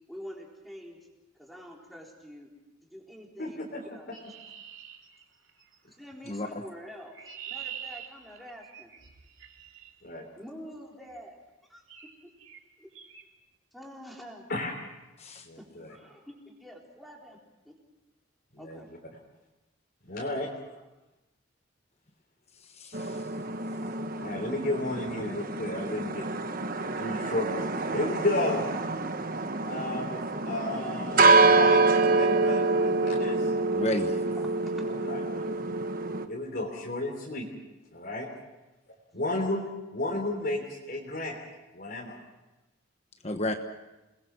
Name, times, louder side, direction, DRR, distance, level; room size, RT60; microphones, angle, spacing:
voice 1, 0.1-1.0 1.3-2.5 2.9-4.2 5.9-7.2 7.5-8.9 10.3-11.4 11.7-12.3 12.8-12.9 13.7-14.5 15.6-17.4 17.6-17.8 18.6-18.9 20.2-20.6 30.4-30.5 33.5-33.6 34.4-34.9, equal, ahead, -1 dB, 4.0 m, -46 dB
voice 2, 3.4-3.8 10.0-10.2 14.5-14.7 15.4-15.9 18.6-18.8 20.1-20.5 24.1-26.3 27.0-28.7 29.6-33.4 34.8-35.6 36.2-37.5 37.9-38.3 39.1-41.4 41.7-42.2, left 2 dB, 50° left, -1 dB, 3.4 m, -33 dB
Chirp tweet, 4.1-5.7 6.8-9.9 11.0-11.3 11.9-12.1 12.4-12.6 12.9-13.2, right 8 dB, 75° right, 2.5 m, -45 dB
voice 3, 6.3-6.6 15.2-15.5 22.7-23.2 33.7-34.2 43.2-43.5, left 1 dB, 30° left, 6 dB, 1.2 m, -32 dB
sound 1, 22.9-36.3, right 3 dB, 45° right, 1.2 m, -26 dB
28.5 x 20.5 x 6.1 m, 1.0 s
head